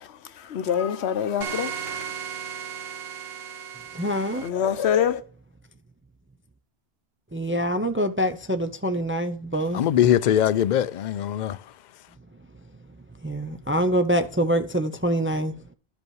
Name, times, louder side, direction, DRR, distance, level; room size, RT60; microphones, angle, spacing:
voice 1, 0.5-1.8 4.4-5.2, left 8 dB, 85° left, 1.0 m, -24 dB
sound 1, 1.4-4.5, right 8 dB, 70° right, 1.1 m, -35 dB
voice 2, 3.9-4.4 7.3-9.8 13.2-15.5, equal, 20° right, 0.4 m, -25 dB
voice 3, 9.7-11.7, left 10 dB, 55° left, 0.6 m, -22 dB
12.0 x 5.4 x 4.7 m
omnidirectional pair, 1.1 m